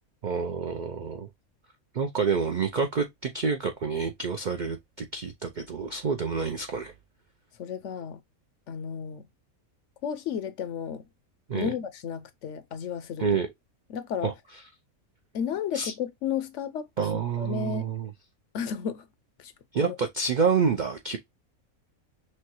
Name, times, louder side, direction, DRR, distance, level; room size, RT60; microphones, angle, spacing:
voice 1, 0.2-1.3 1.9-6.9 11.5-11.7 13.2-13.5 14.2-14.3 15.7-15.9 17.0-18.1 19.7-21.2, right 5 dB, 70° right, 0.4 m, -28 dB
voice 2, 7.6-8.2 8.7-9.3 10.0-11.0 11.5-13.4 13.9-14.3 15.3-17.1 17.4-17.9 18.5-19.1 19.4-19.5 19.8-20.0, left 7 dB, 65° left, 0.8 m, -33 dB
6.0 x 2.3 x 3.0 m
omnidirectional pair, 1.5 m